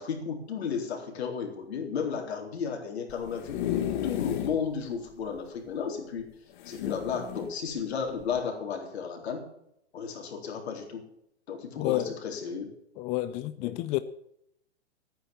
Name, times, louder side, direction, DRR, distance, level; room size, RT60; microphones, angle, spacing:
voice 1, 0.0-3.6 4.0-6.3 6.7-9.4 9.9-11.1 11.5-12.7 13.6-13.7, left 6 dB, 65° left, 4.0 m, -33 dB
sound 1, 3.1-4.6 5.1-5.2 5.4-5.5 6.6-7.5 8.2-8.4, left 11 dB, 45° left, 1.7 m, -32 dB
voice 2, 11.8-12.2 13.0-14.0, left 16 dB, 20° left, 0.4 m, -30 dB
13.0 x 9.5 x 7.2 m
hypercardioid pair, 120°, 35 cm